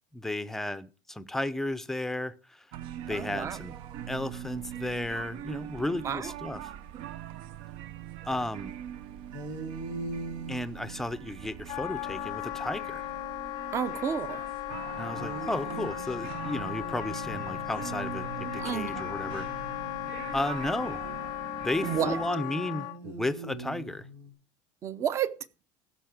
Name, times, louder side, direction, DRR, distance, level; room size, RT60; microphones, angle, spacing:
voice 1, 0.1-2.7 3.1-3.7 4.1-6.6 8.2-8.7 10.5-13.0 15.0-19.5 20.3-21.0 21.6-24.1, left 1 dB, 5° left, 0.6 m, -33 dB
sound 1, 2.7-22.3, right 10 dB, 60° right, 0.7 m, -42 dB
voice 2, 3.1-3.6 6.0-6.3 13.7-14.4 18.6-19.1 21.8-22.2 24.8-25.4, right 8 dB, 30° right, 0.8 m, -31 dB
sound 2, 9.3-13.3 15.1-20.4 21.8-24.3, right 2 dB, 90° right, 4.0 m, -43 dB
Wind instrument woodwind instrument, 11.7-23.0, left 19 dB, 50° left, 0.5 m, -37 dB
15.0 x 6.5 x 6.0 m
cardioid pair, 155°, 10 cm